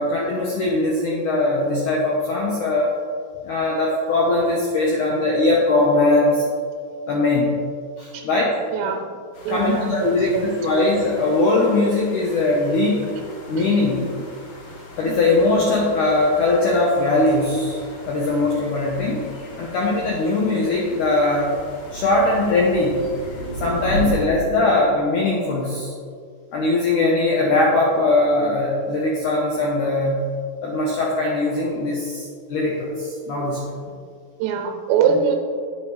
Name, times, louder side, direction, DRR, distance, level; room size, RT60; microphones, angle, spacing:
voice 1, 0.0-2.9 3.4-6.4 7.1-7.6 8.0-8.6 9.5-13.0 13.5-14.0 15.0-17.8 18.1-19.2 19.6-21.5 21.9-23.0 23.6-25.9 26.5-30.3 30.6-33.8, left 2 dB, 75° left, -3 dB, 1.9 m, -20 dB
voice 2, 8.7-9.0 9.5-10.5 13.6-13.8 14.7-14.8 15.0-15.2 19.6-19.7 23.7-23.9 34.4-35.4, right 6 dB, 90° right, 3 dB, 2.9 m, -23 dB
sound 1, 9.3-24.3, right 1 dB, 55° left, 1.9 m, -36 dB
10.0 x 8.9 x 3.2 m, 2.1 s
omnidirectional pair, 5.0 m